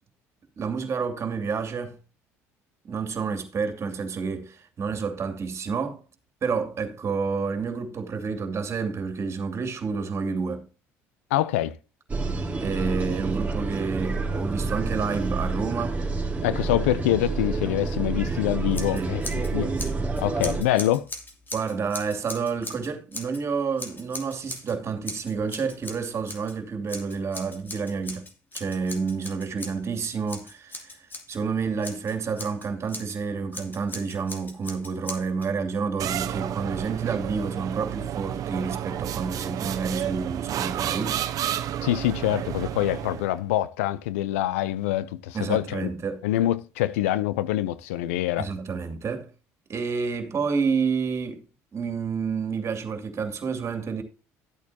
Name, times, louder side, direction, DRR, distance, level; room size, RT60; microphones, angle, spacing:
voice 1, 0.6-2.0 2.9-6.0 6.4-10.7 12.6-16.0 18.9-19.2 21.5-28.3 28.5-41.2 45.3-46.2 48.4-49.3 49.7-51.4 51.7-54.0, right 5 dB, 40° right, 2.6 m, -29 dB
voice 2, 11.3-11.8 16.4-19.7 20.2-21.1 41.8-45.9 46.2-48.5, left 14 dB, 85° left, 0.6 m, -25 dB
sound 1, 12.1-20.6, right 3 dB, 20° right, 3.2 m, -28 dB
Scissors, 18.7-19.5 19.8-23.4 23.8-24.7 25.0-26.5 26.9-31.4 31.8-33.2 33.5-35.5, left 2 dB, 30° left, 2.7 m, -39 dB
sound 2, 36.0-43.4, right 11 dB, 55° right, 0.9 m, -31 dB
13.0 x 8.6 x 2.8 m
hypercardioid pair, 75°, 7 cm